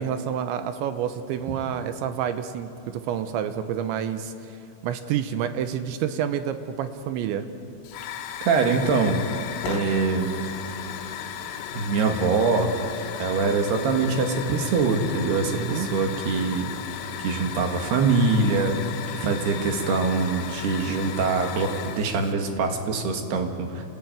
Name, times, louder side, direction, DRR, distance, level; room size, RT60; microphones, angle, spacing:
voice 1, 0.0-4.3 4.8-7.5 15.5-15.9, right 9 dB, 80° right, 9 dB, 3.0 m, -28 dB
Hiss / Fire, 7.8-22.3, left 9 dB, 80° left, 3.8 m, -35 dB
voice 2, 8.4-9.2 9.6-10.3 11.7-12.8 13.2-16.7 17.2-18.8 19.1-23.9, right 4 dB, 65° right, 4 dB, 3.4 m, -23 dB
28.0 x 18.5 x 9.2 m, 2.6 s
omnidirectional pair, 5.7 m